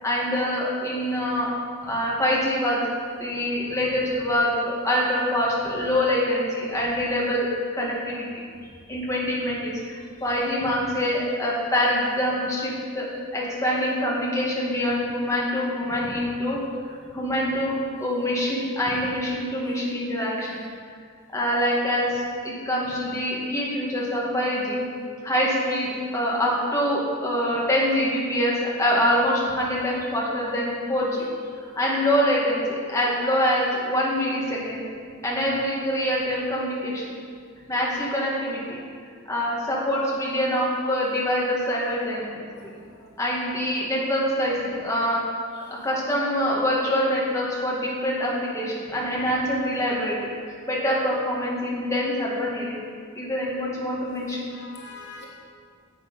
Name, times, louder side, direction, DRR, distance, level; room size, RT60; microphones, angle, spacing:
voice 1, 0.0-1.5 1.9-2.9 3.2-7.5 7.7-8.3 8.9-13.1 13.3-16.6 17.1-20.6 21.3-24.9 25.2-31.3 31.8-34.8 35.2-37.1 37.7-38.6 39.3-42.7 43.2-45.2 45.7-50.3 50.7-52.8 53.1-54.5, equal, 15° left, -5 dB, 2.2 m, -25 dB
voice 2, 42.5-43.1 45.5-45.6 54.5-55.2, left 4 dB, 55° left, -2 dB, 1.3 m, -45 dB
10.5 x 8.0 x 5.6 m, 2.1 s
head